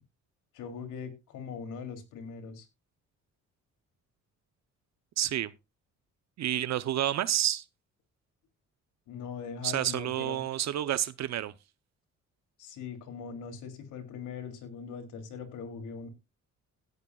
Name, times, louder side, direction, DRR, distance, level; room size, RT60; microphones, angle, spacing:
voice 1, 0.5-2.7 9.1-10.4 12.6-16.1, left 6 dB, 90° left, 3.1 m, -41 dB
voice 2, 5.2-5.5 6.4-7.6 9.6-11.5, right 11 dB, 60° right, 0.7 m, -29 dB
17.5 x 8.1 x 2.3 m
cardioid pair, 90°, 30 cm